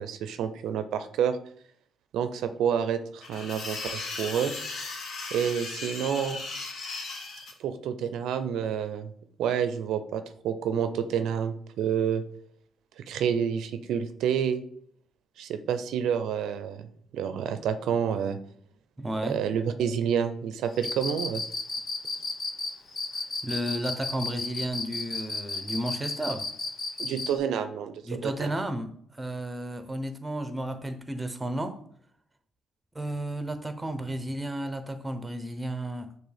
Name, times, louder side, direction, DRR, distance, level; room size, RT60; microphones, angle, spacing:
voice 1, 0.0-1.4 2.1-4.5 5.3-6.4 7.6-9.1 9.4-12.2 13.0-14.6 15.4-16.9 17.1-18.4 19.2-21.4 27.0-28.5, right 8 dB, 80° right, 0.4 m, -29 dB
sound 1, 3.2-7.5, left 3 dB, 65° left, 1.0 m, -37 dB
voice 2, 19.0-19.4 23.4-26.5 28.1-28.9 29.2-31.8 32.9-36.1, right 1 dB, 15° right, 0.6 m, -33 dB
Cricket, 20.8-27.3, left 3 dB, 40° left, 0.8 m, -32 dB
6.1 x 2.5 x 3.3 m
cardioid pair, 90°, 0 cm